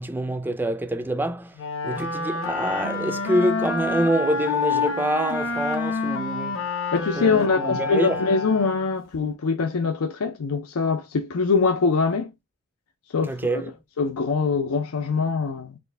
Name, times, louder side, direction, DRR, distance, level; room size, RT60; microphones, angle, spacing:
voice 1, 0.0-1.5 1.8-6.6 7.1-8.2 13.2-13.7, right 1 dB, 10° right, 0.3 m, -26 dB
Wind instrument woodwind instrument, 1.5-9.0, left 3 dB, 60° left, 1.0 m, -28 dB
voice 2, 6.9-12.3 13.1-13.7 14.0-15.8, left 4 dB, 85° left, 0.5 m, -23 dB
4.2 x 2.7 x 3.3 m
head